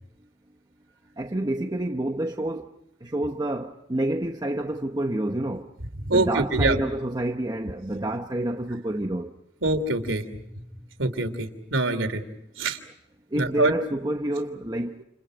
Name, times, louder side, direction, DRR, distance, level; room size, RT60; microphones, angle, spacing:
voice 1, 1.2-2.7 3.0-5.7 6.1-9.3 13.3-15.0, right 1 dB, 20° right, 0.9 m, -28 dB
voice 2, 6.0-6.8 9.6-10.2 11.0-12.2 12.6-12.8 13.3-13.7, right 2 dB, 75° right, 3.0 m, -24 dB
29.5 x 29.0 x 5.1 m
head